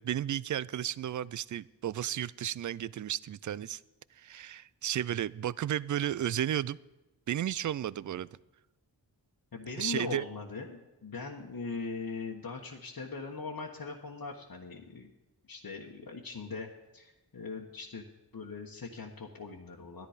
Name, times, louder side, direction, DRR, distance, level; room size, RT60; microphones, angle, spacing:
voice 1, 0.0-3.8 4.2-6.8 7.3-8.3 9.8-10.3, right 11 dB, 45° right, 21 dB, 0.4 m, -33 dB
voice 2, 9.5-15.1 15.5-18.0 18.3-20.1, left 4 dB, 50° left, -2 dB, 1.3 m, -40 dB
12.5 x 10.5 x 5.1 m, 1.0 s
cardioid pair, 45°, 44 cm